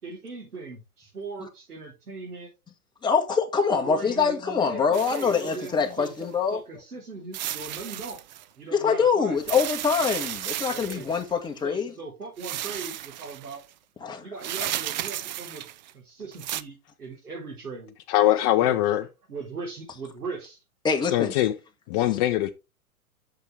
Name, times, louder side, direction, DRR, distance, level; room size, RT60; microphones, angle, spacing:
voice 1, 0.0-2.5 3.8-6.1 6.5-8.2 8.6-9.4 10.7-11.3 11.6-13.6 14.2-15.6 15.9-17.9 18.6-18.8 19.3-20.6, right 4 dB, 90° right, 4.1 m, -39 dB
voice 2, 3.0-6.6 8.7-11.9 14.0-14.2 20.8-21.3, left 5 dB, 10° left, 1.6 m, -24 dB
sound 1, 4.9-6.2 7.3-8.4 9.4-11.3 12.4-13.6 14.4-15.9 16.3-16.6, right 13 dB, 35° right, 0.4 m, -34 dB
voice 3, 18.1-19.0 21.1-21.5 21.9-22.5, left 13 dB, 30° left, 0.6 m, -22 dB
8.2 x 6.7 x 3.4 m
hypercardioid pair, 120°, 45 cm